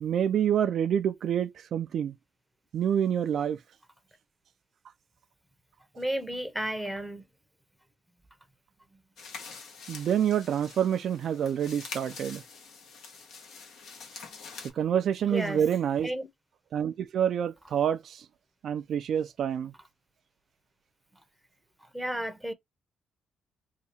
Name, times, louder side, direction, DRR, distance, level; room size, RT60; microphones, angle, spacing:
voice 1, 0.0-2.1 2.7-3.6 9.9-12.4 14.8-16.1 16.7-18.3 18.6-19.7, right 9 dB, 65° right, 0.3 m, -27 dB
voice 2, 6.0-7.2 15.2-15.6 16.0-16.3 21.9-22.5, right 1 dB, ahead, 0.7 m, -32 dB
sound 1, 9.2-14.7, left 5 dB, 75° left, 1.0 m, -45 dB
2.8 x 2.3 x 4.0 m
cardioid pair, 90°, 0 cm